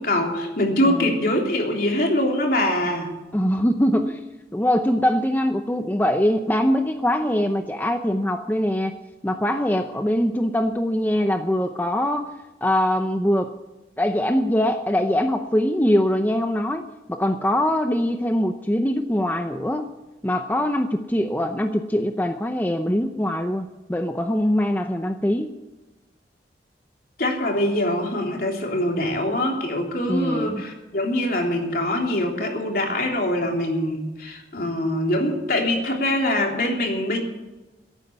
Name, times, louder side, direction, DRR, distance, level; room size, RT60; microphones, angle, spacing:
voice 1, 0.0-3.1 27.2-37.2, left 1 dB, 55° left, 1 dB, 3.4 m, -23 dB
voice 2, 3.3-4.2 4.5-8.9 9.2-12.3 12.6-13.5 14.0-19.9 20.2-25.5 30.1-30.6, equal, 10° left, 6 dB, 0.7 m, -22 dB
17.0 x 9.1 x 8.2 m, 1.1 s
head